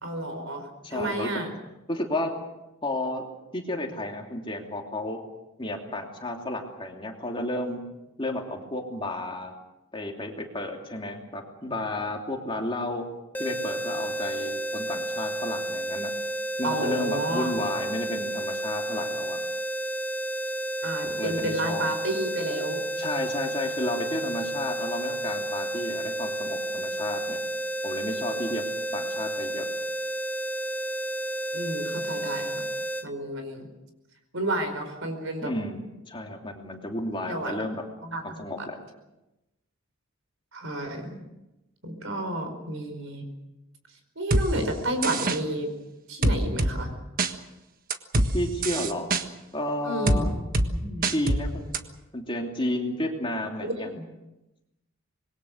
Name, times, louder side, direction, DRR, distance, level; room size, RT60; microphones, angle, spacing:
voice 1, 0.0-1.5 16.6-17.5 20.8-22.8 31.5-32.6 33.0-33.7 34.3-35.5 37.2-37.6 38.0-38.2 38.6-38.7 40.5-41.2 41.8-43.3 44.1-45.7 46.1-46.9 49.8-51.2 53.6-54.0, right 1 dB, 65° right, 7 dB, 4.9 m, -31 dB
voice 2, 0.8-1.3 1.9-2.3 2.8-3.2 3.5-5.2 5.6-7.8 8.2-9.5 9.9-13.1 13.4-16.1 16.6-19.4 21.0-21.9 23.0-27.4 27.8-28.7 28.9-29.7 35.4-37.8 38.2-38.8 48.3-49.2 49.5-50.3 51.1-51.7 52.1-53.9, left 1 dB, 25° left, 1 dB, 2.9 m, -32 dB
sound 1, 13.3-33.1, right 1 dB, 10° left, 1.2 m, -31 dB
sound 2, 44.3-44.5 45.0-45.4 46.2-46.7 47.2-47.3 47.9-48.3 48.6-49.2 50.1-50.2 50.5-50.7 51.0-51.4 51.7-51.8, right 2 dB, 40° right, 1.5 m, -23 dB
26.0 x 21.5 x 6.5 m, 0.97 s
head